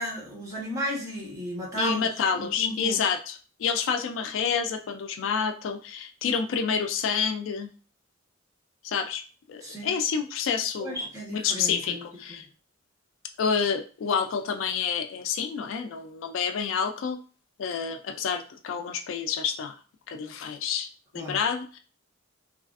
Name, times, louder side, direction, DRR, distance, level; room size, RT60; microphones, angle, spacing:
voice 1, 0.0-2.1 2.3-3.0 9.6-9.9 10.8-12.4 21.1-21.4, equal, 15° right, -4 dB, 1.0 m, -34 dB
voice 2, 1.8-7.7 8.8-9.2 9.5-11.0 11.3-12.4 13.4-17.2 17.6-19.7 20.1-20.9 21.1-21.8, left 6 dB, 70° left, 7 dB, 0.3 m, -28 dB
3.2 x 2.3 x 2.4 m, 0.38 s
head